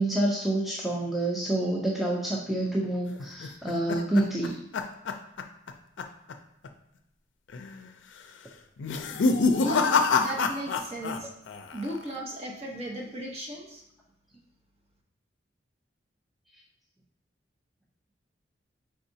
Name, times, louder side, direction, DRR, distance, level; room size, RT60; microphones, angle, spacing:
voice 1, 0.0-4.6, right 1 dB, ahead, -4 dB, 0.4 m, -28 dB
sound 1, 3.2-5.7 6.0-6.3 6.6-6.7 7.5-7.9 8.8-11.2 11.5-12.0, left 4 dB, 75° left, 0.4 m, -26 dB
voice 2, 9.6-11.3 11.7-13.8, right 1 dB, 35° right, -1 dB, 0.9 m, -36 dB
5.6 x 3.5 x 2.7 m, 0.83 s
head